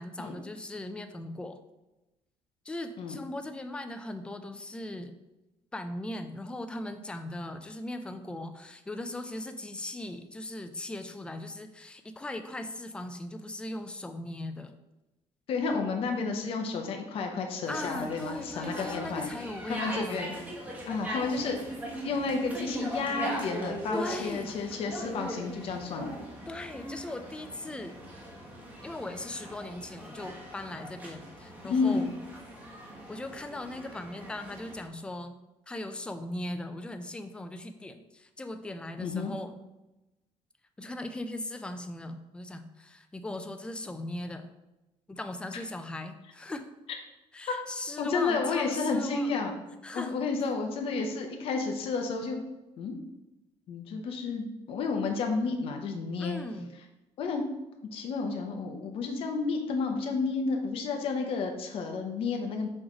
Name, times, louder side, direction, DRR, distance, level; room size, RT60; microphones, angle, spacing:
voice 1, 0.0-1.6 2.6-5.1 5.7-14.7 17.7-20.3 23.9-24.8 26.5-28.0 28.8-32.1 33.1-35.4 35.7-39.6 40.8-44.5 45.1-46.7 47.3-49.3 49.8-50.1 56.2-56.8, left 1 dB, 10° left, 7 dB, 0.4 m, -39 dB
voice 2, 15.5-19.3 19.7-20.3 20.9-21.6 22.0-26.2 31.6-32.1 39.0-39.3 47.5-47.6 48.0-49.6 49.9-52.4 52.8-52.9 53.7-56.4 57.2-57.4 57.9-62.7, left 4 dB, 55° left, 3 dB, 0.8 m, -31 dB
sound 1, 17.6-34.9, equal, 15° right, 1.2 m, -40 dB
6.3 x 3.1 x 4.9 m, 0.99 s
cardioid pair, 160°, 11 cm